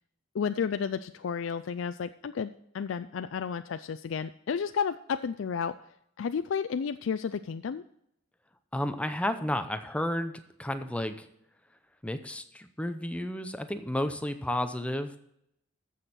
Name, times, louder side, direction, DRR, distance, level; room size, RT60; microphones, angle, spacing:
voice 1, 0.3-5.8 6.2-7.8, left 6 dB, 75° left, 11 dB, 0.4 m, -32 dB
voice 2, 8.7-11.3 12.0-15.2, left 1 dB, 5° left, 9 dB, 0.7 m, -32 dB
14.5 x 6.3 x 4.2 m, 0.75 s
head